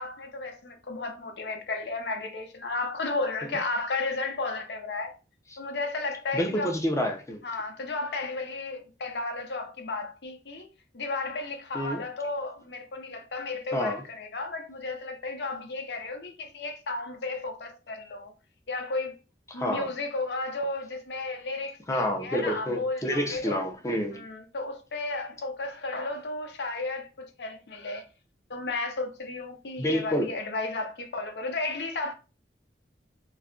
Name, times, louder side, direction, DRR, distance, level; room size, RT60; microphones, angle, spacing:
voice 1, 0.0-5.1 5.6-6.7 7.4-10.7 10.9-18.3 18.7-19.2 19.5-23.6 24.1-28.0 28.5-32.1, left 3 dB, 65° left, 0.6 m, -33 dB
voice 2, 6.3-7.4 11.7-12.0 13.7-14.0 19.5-19.9 21.9-24.3 29.8-30.3, equal, 15° left, 0.5 m, -28 dB
2.4 x 2.2 x 3.6 m
head